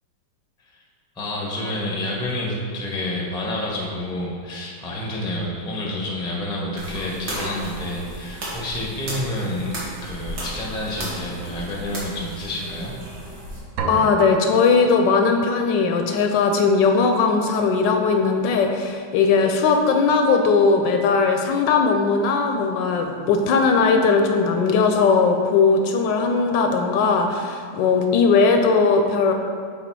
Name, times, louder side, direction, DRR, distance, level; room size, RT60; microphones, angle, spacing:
voice 1, 1.2-9.7 10.0-12.9, left 1 dB, 5° left, -3 dB, 0.5 m, -29 dB
sound 1, 6.8-13.6, right 1 dB, 60° right, 2.0 m, -34 dB
sound 2, 13.8-15.6, right 3 dB, 75° right, 0.7 m, -31 dB
voice 2, 13.9-29.3, left 4 dB, 75° left, 4 dB, 1.2 m, -19 dB
6.7 x 4.0 x 4.6 m, 2.3 s
omnidirectional pair, 2.1 m